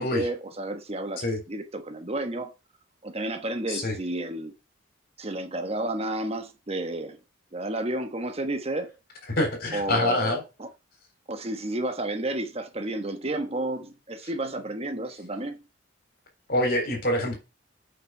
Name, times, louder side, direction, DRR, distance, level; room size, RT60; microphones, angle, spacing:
voice 1, 0.0-2.5 3.0-4.5 5.2-7.2 7.5-8.9 9.7-10.7 11.3-15.6, right 1 dB, 30° right, 1.1 m, -31 dB
voice 2, 9.4-10.4 16.5-17.3, left 1 dB, 50° left, 3.8 m, -25 dB
8.6 x 5.9 x 4.8 m
head